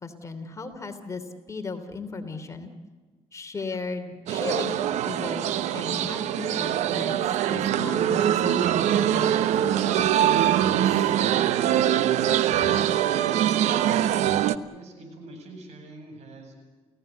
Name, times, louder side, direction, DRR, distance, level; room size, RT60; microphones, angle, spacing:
voice 1, 0.0-2.7 3.3-10.9, left 3 dB, 25° left, 6 dB, 3.1 m, -36 dB
sound 1, 4.3-14.6, right 11 dB, 85° right, 1.0 m, -23 dB
voice 2, 14.6-16.5, right 1 dB, 70° right, 5 dB, 7.8 m, -45 dB
29.5 x 17.0 x 7.9 m, 1.4 s
cardioid pair, 100°, 11 cm